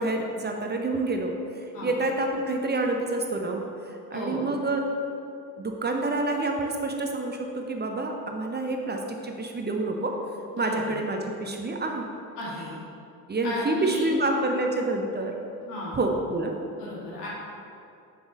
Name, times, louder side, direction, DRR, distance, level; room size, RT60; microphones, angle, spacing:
voice 1, 0.0-1.3 1.6-3.6 3.9-4.8 5.6-10.1 10.6-12.0 13.3-15.3 15.9-16.5, right 2 dB, 20° right, 2 dB, 0.7 m, -28 dB
voice 2, 12.4-12.7 13.4-14.1 15.6-16.0 16.7-17.3, left 1 dB, 80° left, -5 dB, 1.5 m, -35 dB
7.0 x 6.9 x 2.6 m, 2.6 s
figure-of-eight pair, 50°, 47 cm